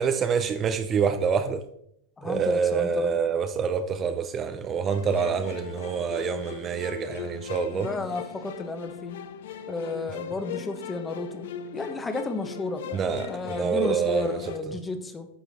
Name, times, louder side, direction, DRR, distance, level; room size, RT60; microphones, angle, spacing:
voice 1, 0.0-1.6 2.2-7.9 12.9-14.3, right 6 dB, 30° right, 0.6 m, -26 dB
voice 2, 2.2-3.2 7.5-9.2 9.7-15.3, left 3 dB, 15° left, 1.0 m, -33 dB
sound 1, 4.9-14.6, left 7 dB, 80° left, 0.7 m, -39 dB
9.5 x 5.5 x 4.2 m
supercardioid pair, 125°, 0 cm